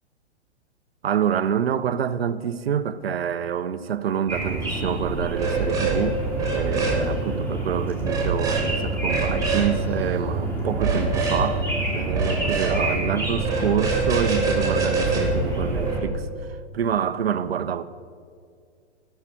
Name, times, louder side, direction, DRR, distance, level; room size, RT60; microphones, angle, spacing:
voice 1, 1.0-6.2 6.5-11.7 11.9-16.3 16.7-17.8, right 8 dB, 60° right, 0.7 m, -27 dB
morning birds, 4.3-16.0, right 2 dB, 5° left, 2.3 m, -28 dB
sound 1, 5.3-6.0 6.3-7.0 8.0-8.7 9.0-9.7 10.7-11.4 12.1-12.8 13.4-16.1, right 4 dB, 10° right, 2.1 m, -25 dB
14.5 x 6.7 x 7.4 m
figure-of-eight pair, 110°, 34 cm